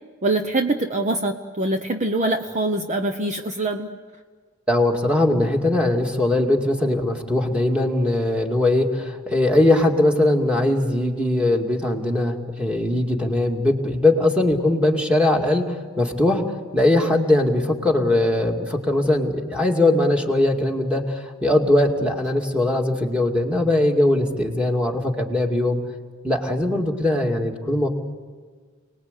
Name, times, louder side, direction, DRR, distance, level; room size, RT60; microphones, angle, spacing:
voice 1, 0.2-3.9, right 2 dB, 35° right, 5 dB, 0.9 m, -24 dB
voice 2, 4.7-25.8 26.2-27.9, left 1 dB, 5° right, 1 dB, 2.4 m, -20 dB
29.5 x 20.0 x 8.3 m, 1.5 s
head